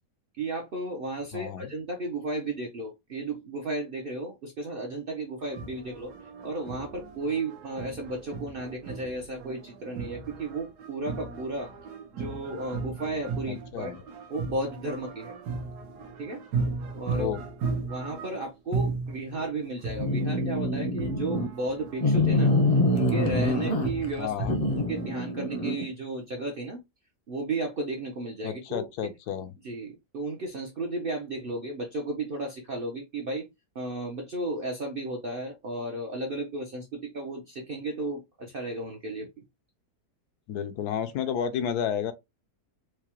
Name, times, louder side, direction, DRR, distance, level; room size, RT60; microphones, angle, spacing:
voice 1, 0.4-6.1 6.4-11.7 12.1-14.0 14.3-15.4 16.2-16.4 17.0-17.3 17.8-24.3 24.7-26.8 27.3-28.9 29.6-33.5 33.7-39.3, right 2 dB, 55° right, 0.6 m, -34 dB
voice 2, 1.3-1.7 13.5-14.0 17.1-17.4 24.2-24.6 28.4-29.5 40.5-42.1, left 8 dB, 80° left, 1.1 m, -31 dB
sound 1, 5.4-25.2, right 3 dB, 85° right, 1.3 m, -36 dB
sound 2, 20.0-21.5 22.0-24.1 24.5-25.9, left 1 dB, 40° left, 0.6 m, -25 dB
4.7 x 2.1 x 2.9 m
omnidirectional pair, 1.7 m